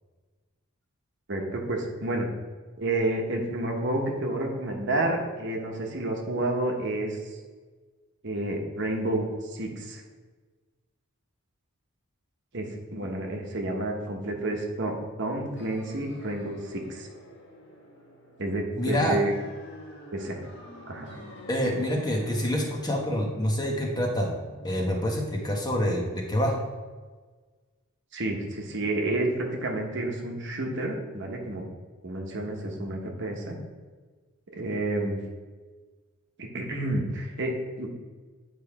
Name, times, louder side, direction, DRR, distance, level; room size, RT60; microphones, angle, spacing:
voice 1, 1.3-2.3 2.8-7.2 8.2-10.0 12.5-17.1 18.4-19.4 20.1-20.4 20.9-21.2 28.1-31.6 32.0-33.6 34.5-35.2 36.4-37.9, right 1 dB, 55° right, 1 dB, 1.1 m, -30 dB
sound 1, 15.6-26.1, equal, 55° left, 1.4 m, -46 dB
voice 2, 18.8-19.2 21.5-24.3 24.6-26.5, equal, 20° left, -1 dB, 1.0 m, -26 dB
8.8 x 3.4 x 4.8 m, 1.4 s
head